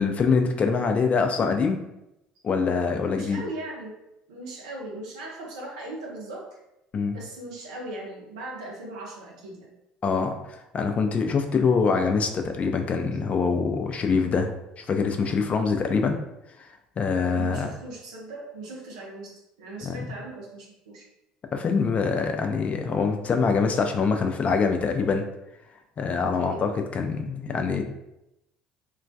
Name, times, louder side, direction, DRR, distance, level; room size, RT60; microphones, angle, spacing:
voice 1, 0.0-1.8 2.4-3.4 6.9-7.2 10.0-14.5 14.8-16.2 17.0-17.7 19.8-20.1 21.5-25.2 26.0-27.8, left 5 dB, 40° left, 5 dB, 0.4 m, -24 dB
voice 2, 3.1-4.0 4.3-6.5 7.1-9.7 17.3-21.1 26.1-26.6, right 2 dB, 85° right, -2 dB, 0.6 m, -39 dB
2.2 x 2.2 x 2.6 m, 0.88 s
hypercardioid pair, 65°, 3 cm